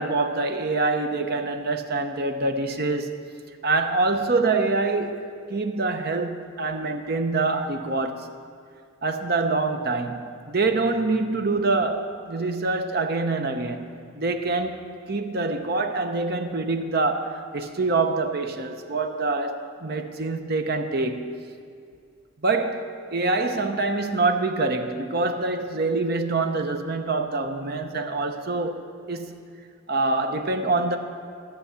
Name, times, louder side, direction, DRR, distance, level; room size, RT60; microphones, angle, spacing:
voice 1, 0.0-3.1 3.6-5.2 5.5-8.3 9.0-13.9 14.1-21.4 22.4-29.4 29.9-31.0, right 3 dB, 50° right, 0.8 m, -25 dB
14.0 x 6.9 x 6.9 m
head